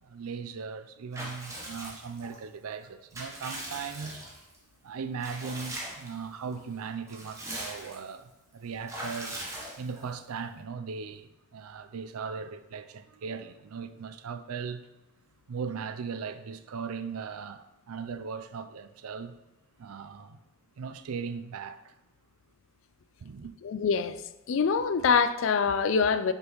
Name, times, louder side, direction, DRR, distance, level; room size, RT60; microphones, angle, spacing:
voice 1, 0.0-4.2 4.8-9.3 9.8-14.9 15.5-19.4 19.8-20.4 20.8-21.9 23.2-23.5, right 5 dB, 90° right, 0.4 m, -38 dB
Water / Bathtub (filling or washing) / Liquid, 1.1-2.4 2.8-4.6 5.2-6.2 6.5-6.6 6.9-8.1 8.9-10.1, right 1 dB, 15° right, 0.9 m, -40 dB
voice 2, 23.6-24.2 24.5-26.3, left 5 dB, 60° left, 0.4 m, -24 dB
6.7 x 5.3 x 3.0 m
head